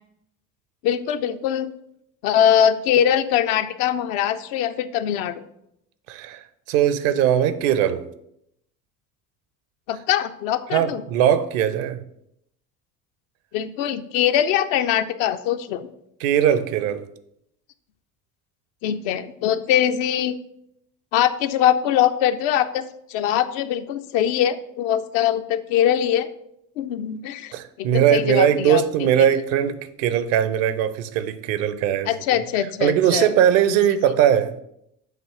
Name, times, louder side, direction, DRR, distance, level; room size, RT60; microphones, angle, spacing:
voice 1, 0.8-1.7 2.2-5.4 9.9-11.0 13.5-15.9 18.8-20.4 21.1-26.3 26.8-27.5 27.8-29.1 32.1-33.3 33.7-33.8, left 10 dB, 55° left, 0.6 m, -22 dB
voice 2, 6.1-8.1 10.7-12.0 16.2-17.1 27.5-32.4 32.8-34.6, right 10 dB, 55° right, 0.7 m, -20 dB
7.4 x 3.0 x 5.6 m
figure-of-eight pair, 55°, 45 cm